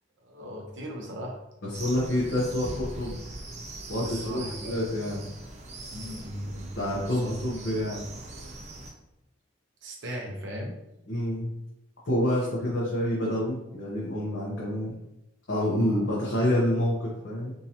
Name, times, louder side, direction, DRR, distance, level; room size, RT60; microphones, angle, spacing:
voice 1, 0.2-1.4 4.0-4.8 5.9-6.7 7.1-7.3 9.8-10.8 12.3-12.4 15.7-16.1, equal, 75° right, -1 dB, 0.7 m, -38 dB
voice 2, 1.6-3.2 3.9-5.3 6.8-8.1 11.1-11.5 12.1-14.9 15.5-17.5, left 1 dB, 70° left, -7 dB, 0.8 m, -28 dB
sound 1, 1.7-8.9, right 2 dB, 35° right, 0.5 m, -41 dB
3.7 x 2.8 x 2.8 m, 0.88 s
head